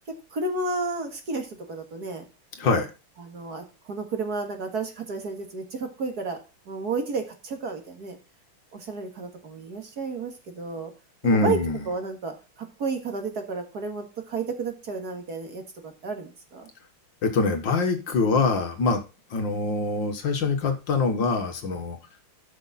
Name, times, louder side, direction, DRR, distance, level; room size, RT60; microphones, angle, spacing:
voice 1, 0.1-2.2 3.2-6.4 6.7-8.2 8.7-10.9 11.2-11.6 11.9-16.7, right 3 dB, 45° right, 4 dB, 2.2 m, -32 dB
voice 2, 11.2-11.8 17.2-19.0 19.3-22.0, left 3 dB, 60° left, 6 dB, 2.0 m, -24 dB
12.5 x 6.3 x 4.2 m, 0.30 s
omnidirectional pair, 2.4 m